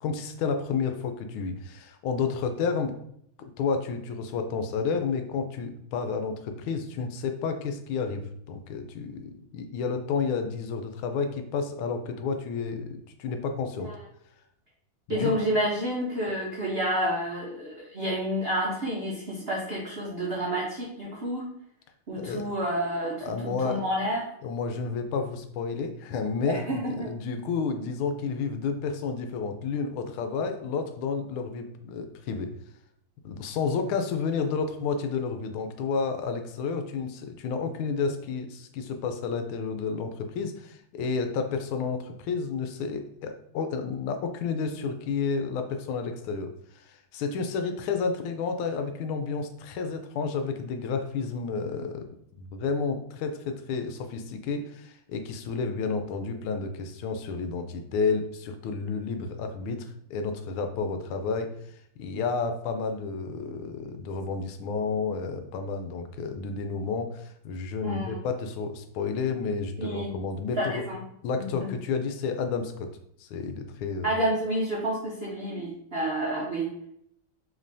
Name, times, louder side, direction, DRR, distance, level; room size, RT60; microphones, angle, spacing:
voice 1, 0.0-2.9 3.4-13.9 15.1-15.3 22.1-22.5 23.2-23.8 24.4-32.5 33.2-52.1 52.4-61.5 62.0-70.8 71.2-72.9 73.2-74.1, left 5 dB, 85° left, 7 dB, 1.5 m, -31 dB
voice 2, 15.1-21.5 22.1-23.2 23.4-24.2 26.5-27.1 67.8-68.2 69.8-70.1 70.6-71.0 71.4-71.7 74.0-76.9, equal, 70° right, -4 dB, 0.5 m, -29 dB
5.2 x 3.6 x 2.6 m, 0.71 s
omnidirectional pair, 2.3 m